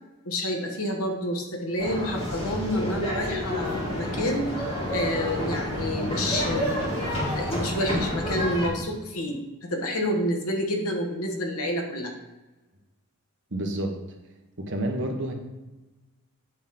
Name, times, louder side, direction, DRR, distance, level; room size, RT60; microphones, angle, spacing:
voice 1, 0.2-4.5 4.9-7.0 7.3-12.1, left 1 dB, 75° left, 1 dB, 1.4 m, -29 dB
sound 1, 1.8-8.7, equal, 25° left, 1.9 m, -29 dB
voice 2, 13.5-14.0 14.6-15.3, right 1 dB, 55° right, 2 dB, 1.2 m, -29 dB
8.2 x 3.6 x 5.8 m, 1.1 s
head